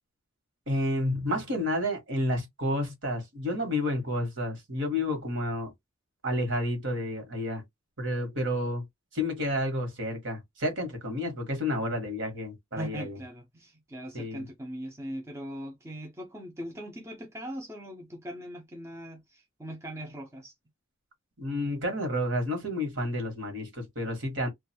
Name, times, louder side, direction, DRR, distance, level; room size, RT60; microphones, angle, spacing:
voice 1, 0.7-5.7 6.2-7.6 8.0-8.8 9.1-13.2 14.1-14.5 21.4-24.5, left 1 dB, 65° right, 1.2 m, -30 dB
voice 2, 12.8-20.5, equal, 15° right, 0.5 m, -40 dB
2.4 x 2.3 x 2.7 m
head